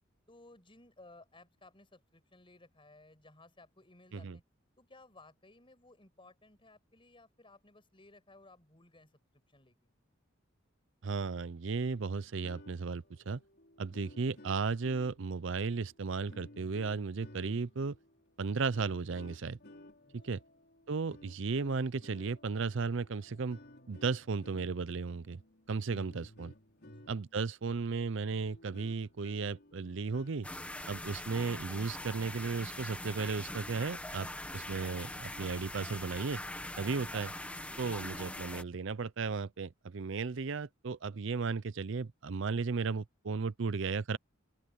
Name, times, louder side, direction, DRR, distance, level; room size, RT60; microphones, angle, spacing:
voice 1, 0.3-4.4 4.8-9.9 20.0-20.5 26.8-27.2, left 2 dB, 25° left, 5.8 m, -59 dB
voice 2, 11.0-13.4 13.8-18.0 18.4-19.6 20.1-20.4 20.9-23.6 23.9-25.4 25.7-26.5 27.1-30.5 30.9-34.3 34.5-36.4 36.8-37.3 37.8-44.2, right 4 dB, 65° right, 0.6 m, -35 dB
sound 1, 12.2-27.5 27.9-28.0 28.2-30.5, left 1 dB, 55° left, 4.7 m, -57 dB
sound 2, 30.4-38.6, left 1 dB, 5° left, 1.6 m, -42 dB
open air
head